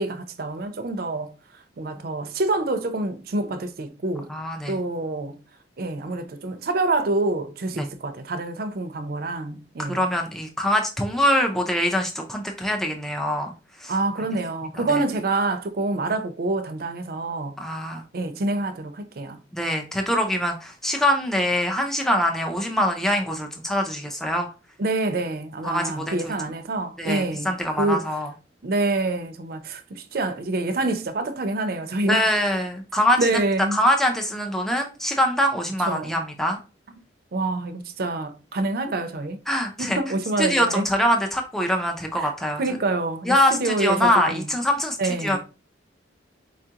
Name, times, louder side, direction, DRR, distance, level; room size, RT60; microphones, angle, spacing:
voice 1, 0.0-1.3 1.8-4.3 4.7-5.4 5.8-10.0 13.9-17.6 17.9-19.4 24.8-27.5 27.8-28.0 28.6-32.3 33.2-33.8 35.9-36.2 37.3-39.4 39.8-40.9 42.2-42.3 42.6-44.5 45.0-45.4, right 2 dB, 55° right, 0.5 m, -26 dB
voice 2, 4.3-4.8 7.8-7.9 9.8-13.5 13.8-13.9 14.8-15.0 17.6-18.0 19.5-24.5 25.6-26.3 27.0-28.3 32.1-33.3 33.7-36.6 39.5-40.0 40.4-42.6 43.3-45.4, equal, ahead, 0.4 m, -24 dB
4.4 x 2.4 x 2.8 m
head